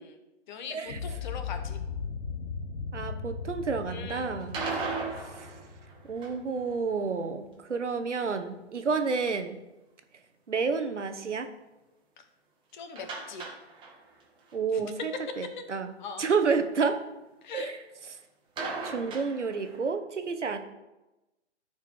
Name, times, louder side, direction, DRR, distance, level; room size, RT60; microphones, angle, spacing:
voice 1, 0.5-1.8 3.9-4.6 12.2-12.3 12.7-13.5 14.7-14.9 15.6-15.7 16.0-16.3 17.4-17.8, left 5 dB, 40° left, 7 dB, 1.2 m, -41 dB
sound 1, 0.9-6.9, left 5 dB, 90° left, 1.4 m, -38 dB
voice 2, 2.9-4.6 6.1-7.4 7.7-9.5 10.5-11.5 14.5-15.1 15.4-15.9 16.2-17.0 17.5-17.7 18.8-20.6, right 5 dB, 90° right, 8 dB, 1.1 m, -29 dB
sound 2, 4.4-6.6 13.0-14.2 14.5-14.6 15.0-15.1 18.6-19.9, right 4 dB, 15° right, 1.4 m, -36 dB
13.0 x 4.6 x 4.7 m, 1.0 s
hypercardioid pair, 135°, 35 cm